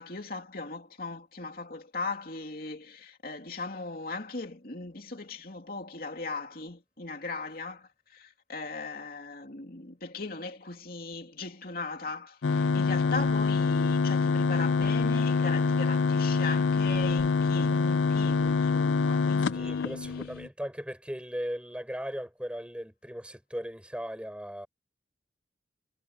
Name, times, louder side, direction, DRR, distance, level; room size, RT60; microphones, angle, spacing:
voice 1, 0.0-20.3, left 3 dB, 55° left, 2.9 m, -38 dB
sound 1, 12.4-20.5, left 4 dB, 90° left, 0.5 m, -25 dB
voice 2, 19.5-24.7, equal, 5° right, 6.7 m, -37 dB
head